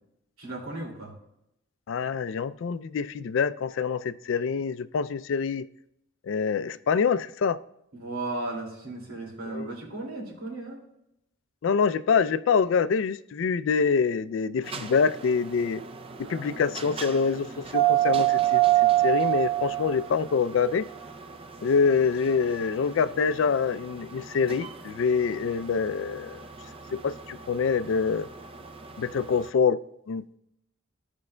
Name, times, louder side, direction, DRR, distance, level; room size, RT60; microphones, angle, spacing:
voice 1, 0.4-1.1 7.9-10.8 16.2-16.8, right 2 dB, 90° right, -1 dB, 2.4 m, -36 dB
voice 2, 1.9-5.7 6.2-7.6 9.5-9.7 11.6-15.8 16.3-20.9 21.6-26.4 26.9-28.3 29.0-29.8 30.1-30.2, left 5 dB, 65° left, 15 dB, 0.3 m, -25 dB
sound 1, 14.6-29.4, right 15 dB, 25° right, 0.4 m, -27 dB
15.0 x 5.3 x 2.2 m, 0.80 s
head